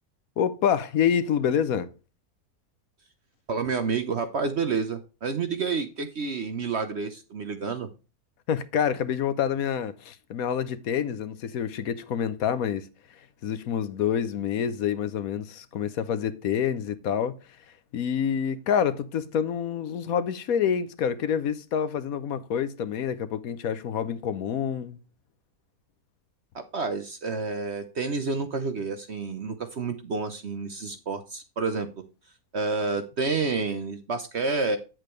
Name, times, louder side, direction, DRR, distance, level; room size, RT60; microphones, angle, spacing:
voice 1, 0.4-1.9 8.5-12.9 13.4-17.4 17.9-25.0, left 8 dB, 70° left, 1.2 m, -27 dB
voice 2, 3.5-7.9 26.5-31.9 32.5-34.8, right 4 dB, 50° right, 1.0 m, -29 dB
8.7 x 7.7 x 3.1 m
omnidirectional pair, 1.6 m